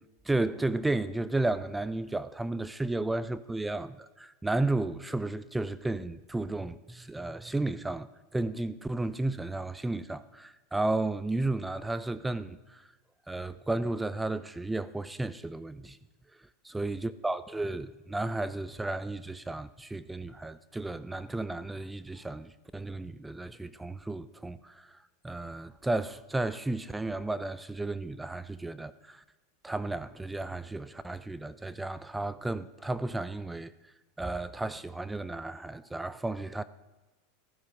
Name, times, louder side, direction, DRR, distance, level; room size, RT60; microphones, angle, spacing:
voice 1, 0.3-8.1 8.3-12.8 13.3-16.0 16.6-24.9 25.2-29.2 29.6-33.7 34.2-36.6, right 2 dB, 10° right, 0.5 m, -33 dB
13.0 x 10.0 x 6.3 m
hypercardioid pair, 110°, 0 cm